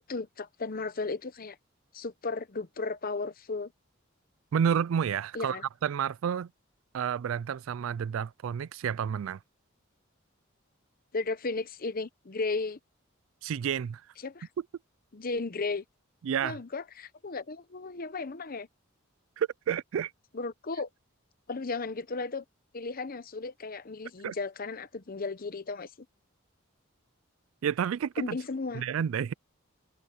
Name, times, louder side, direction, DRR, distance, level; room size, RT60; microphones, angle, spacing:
voice 1, 0.1-1.6 1.9-3.7 5.3-5.6 11.1-12.8 14.2-14.5 15.1-15.8 16.4-18.7 20.3-20.9 21.5-22.4 22.7-25.9 28.2-28.8, left 3 dB, 45° left, 0.9 m, -35 dB
voice 2, 4.5-6.5 6.9-9.4 13.4-14.0 16.2-16.6 19.4-20.1 24.2-24.3 27.6-28.4 28.7-29.3, right 8 dB, 75° right, 0.3 m, -30 dB
head